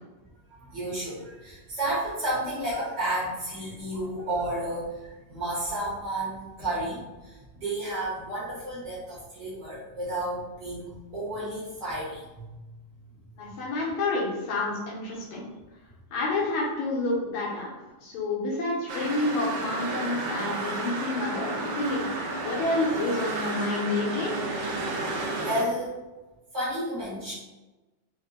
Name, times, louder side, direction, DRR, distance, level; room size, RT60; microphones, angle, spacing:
voice 1, 0.5-12.6 20.4-20.6 25.4-26.0 26.5-27.3, right 1 dB, 60° right, -8 dB, 1.2 m, -32 dB
voice 2, 13.4-15.5 16.1-17.7 18.0-22.0 22.4-24.3, left 2 dB, 80° left, -5 dB, 2.1 m, -29 dB
sound 1, 18.9-25.6, right 2 dB, 80° right, 1.9 m, -32 dB
5.1 x 2.1 x 2.5 m, 1.1 s
omnidirectional pair, 3.4 m